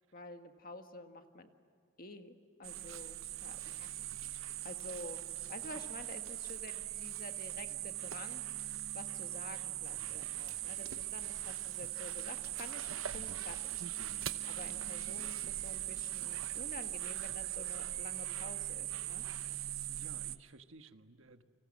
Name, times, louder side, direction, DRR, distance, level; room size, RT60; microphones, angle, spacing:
voice 1, 0.1-1.5 2.0-3.9 4.3-8.4 8.7-13.8 14.2-19.3, left 2 dB, 45° left, 6 dB, 1.8 m, -50 dB
sound 1, 2.6-20.4, right 13 dB, 90° right, 0.9 m, -40 dB
voice 2, 19.9-21.4, right 3 dB, 70° right, 8 dB, 1.4 m, -57 dB
29.5 x 25.5 x 7.6 m, 2.3 s
head